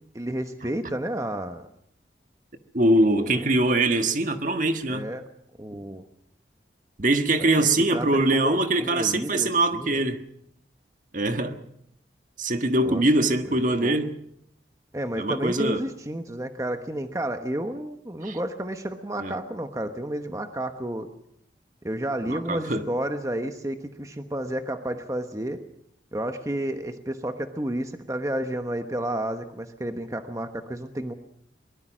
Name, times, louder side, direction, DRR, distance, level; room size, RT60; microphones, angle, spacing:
voice 1, 0.1-1.7 3.0-3.5 4.9-5.2 5.6-6.0 7.4-10.0 12.8-13.0 13.5-14.0 14.9-21.1 21.8-25.6 26.1-31.1, right 1 dB, 20° right, 1.1 m, -31 dB
voice 2, 2.7-5.1 7.0-10.2 11.1-11.6 12.4-14.1 15.2-15.8 18.2-18.4 19.2-19.3 22.3-22.9, right 2 dB, 45° right, 1.5 m, -23 dB
23.0 x 20.5 x 6.3 m
head